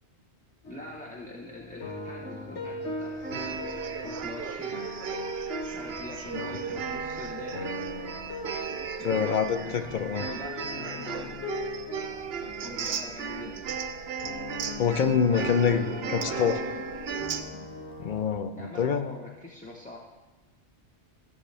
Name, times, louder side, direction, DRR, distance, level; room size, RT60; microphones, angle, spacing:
sound 1, 0.6-18.2, left 2 dB, 80° left, 1.3 m, -40 dB
voice 1, 0.7-4.8 5.6-7.8 9.0-11.5 12.4-13.6 15.3-16.8 18.6-20.0, left 2 dB, 10° left, -4 dB, 0.7 m, -43 dB
sound 2, 3.2-17.4, right 7 dB, 65° right, 0.8 m, -35 dB
voice 2, 9.0-10.2 14.8-16.6 18.0-19.1, left 7 dB, 55° left, 8 dB, 0.6 m, -26 dB
14.5 x 7.1 x 3.4 m, 1.2 s
omnidirectional pair, 1.2 m